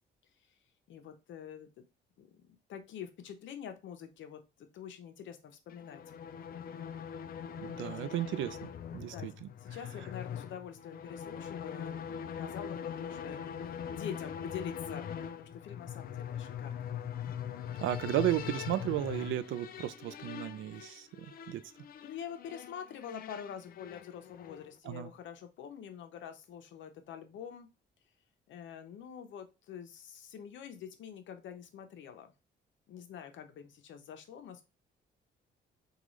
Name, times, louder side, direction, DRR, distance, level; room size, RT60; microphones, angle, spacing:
voice 1, 0.9-1.7 2.2-6.0 6.5-6.7 9.1-9.3 9.6-15.1 15.4-16.9 20.7-21.0 22.0-27.7 28.5-32.3 32.9-34.7, left 8 dB, 70° left, 0.7 m, -46 dB
sound 1, 5.7-24.8, left 8 dB, 50° left, 0.4 m, -42 dB
voice 2, 7.6-9.5 17.8-21.7 24.9-25.1, right 13 dB, 80° right, 0.4 m, -34 dB
3.7 x 2.4 x 3.1 m
cardioid pair, 90°, 20 cm